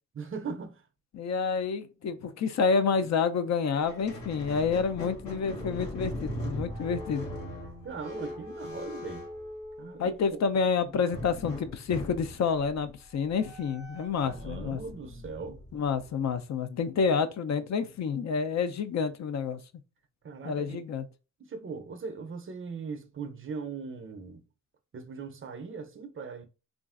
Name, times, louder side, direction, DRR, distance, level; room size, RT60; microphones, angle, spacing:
voice 1, 0.1-0.8 7.8-9.3 9.8-10.4 14.2-15.6 20.2-20.8 21.4-24.4 24.9-26.5, right 5 dB, 40° right, 0.5 m, -39 dB
voice 2, 1.1-7.3 10.0-14.8 15.7-19.6 20.4-21.0, left 5 dB, 55° left, 0.5 m, -29 dB
Squeak, 3.8-10.2 11.1-16.3, left 1 dB, 80° left, 1.1 m, -40 dB
3.1 x 2.4 x 2.4 m
cardioid pair, 70°, 33 cm